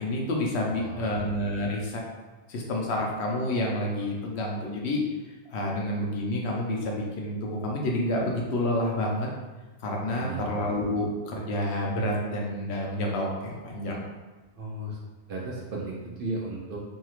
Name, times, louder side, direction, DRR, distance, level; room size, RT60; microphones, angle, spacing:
voice 1, 0.0-2.0 2.5-5.0 5.5-9.3 9.8-14.0, left 1 dB, 70° left, -1 dB, 0.8 m, -29 dB
voice 2, 0.7-1.3 10.2-10.5 14.6-15.0 15.3-16.8, right 2 dB, 60° right, -3 dB, 0.6 m, -35 dB
3.0 x 2.7 x 2.4 m, 1.2 s
omnidirectional pair, 1.2 m